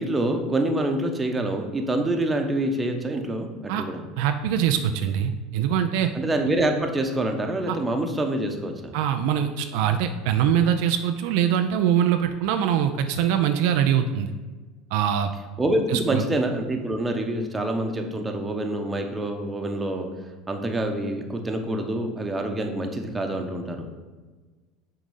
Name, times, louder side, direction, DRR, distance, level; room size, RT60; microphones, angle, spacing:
voice 1, 0.0-4.0 6.1-8.9 15.6-20.1 20.5-23.9, right 1 dB, 15° right, 4 dB, 1.0 m, -26 dB
voice 2, 4.2-6.1 7.7-7.8 8.9-14.3 14.9-15.3 15.9-16.2, right 9 dB, 75° right, 7 dB, 0.4 m, -23 dB
6.2 x 3.9 x 5.5 m, 1.3 s
supercardioid pair, 100°, 0 cm